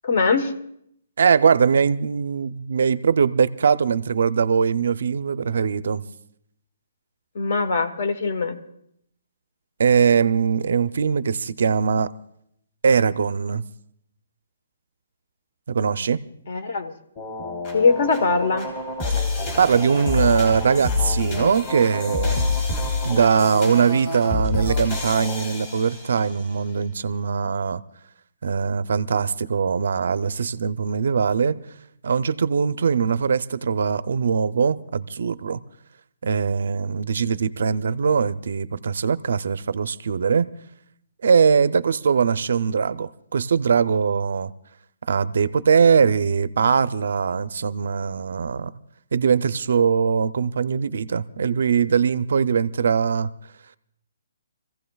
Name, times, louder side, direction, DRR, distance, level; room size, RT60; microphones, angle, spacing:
voice 1, 0.0-0.5 7.3-8.6 16.5-16.9 17.7-18.7, left 4 dB, 45° left, 1.1 m, -21 dB
voice 2, 1.2-6.0 9.8-12.1 12.8-13.6 15.7-16.2 19.6-22.4 23.0-27.8 28.4-31.6 32.0-35.6 36.2-40.5 41.2-44.5 45.1-48.7 49.1-53.3, right 6 dB, 60° right, 0.5 m, -21 dB
sound 1, 17.1-26.4, left 3 dB, 25° left, 2.9 m, -27 dB
28.5 x 15.5 x 2.3 m
hypercardioid pair, 175°, 0 cm